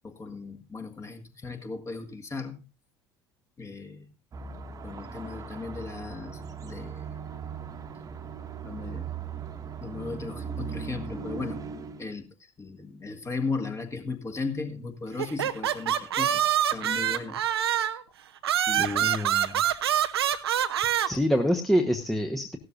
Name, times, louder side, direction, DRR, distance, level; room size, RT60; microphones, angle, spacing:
voice 1, 0.0-2.7 3.6-4.1 4.8-7.3 8.6-9.1 9.8-11.6 12.0-16.4 16.7-17.4 17.7-18.0 18.7-19.2, left 4 dB, 20° left, 6 dB, 1.8 m, -36 dB
sound 1, 4.3-12.0, right 5 dB, 25° right, 1.3 m, -38 dB
sound 2, 15.2-18.0 18.4-21.1, right 10 dB, 70° right, 0.8 m, -25 dB
voice 2, 18.7-19.5 21.1-22.6, equal, ahead, 4 dB, 1.1 m, -26 dB
16.0 x 12.5 x 2.6 m, 0.27 s
figure-of-eight pair, 70°, 14 cm